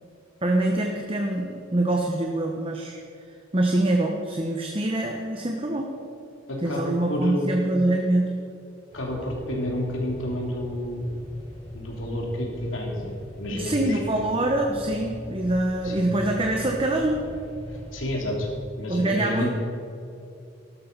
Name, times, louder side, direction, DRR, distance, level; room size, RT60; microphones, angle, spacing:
voice 1, 0.4-3.0 3.5-5.9 6.6-8.3 13.5-17.2 18.9-19.5, right 1 dB, 30° right, 2 dB, 1.0 m, -24 dB
voice 2, 6.5-7.5 8.9-11.1 11.7-14.3 15.8-16.1 17.7-18.5 18.8-19.5, left 1 dB, 85° left, -1 dB, 3.1 m, -30 dB
sound 1, 8.9-18.6, equal, 30° left, 3.6 m, -40 dB
14.0 x 12.0 x 5.4 m, 2.5 s
head